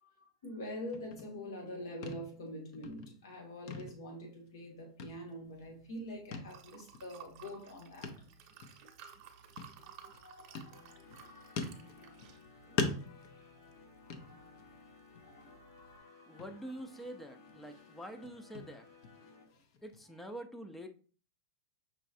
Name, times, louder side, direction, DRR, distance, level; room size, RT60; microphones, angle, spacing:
voice 1, 0.0-8.2 9.9-13.6 14.0-14.7 15.2-16.4 19.5-19.6, equal, 85° left, 2.1 m, -47 dB
sound 1, 0.9-1.7 2.0-2.5 2.7-3.4 3.7-4.7 5.0-5.7 6.3-6.6 6.9-7.0 8.0-8.3 8.6-8.7 9.6-10.2 10.5-11.2 11.6-12.4 12.8-14.8 15.1-15.4 15.8-15.9 16.4-17.1 17.5-20.0, left 4 dB, 50° left, 0.7 m, -42 dB
Liquid, 5.4-16.0, right 8 dB, 40° right, 0.8 m, -57 dB
sound 2, 10.7-19.5, left 4 dB, 65° left, 1.4 m, -59 dB
voice 2, 16.3-18.9 19.8-20.9, right 1 dB, 5° left, 0.5 m, -46 dB
5.7 x 3.1 x 2.6 m
supercardioid pair, 150°, 2 cm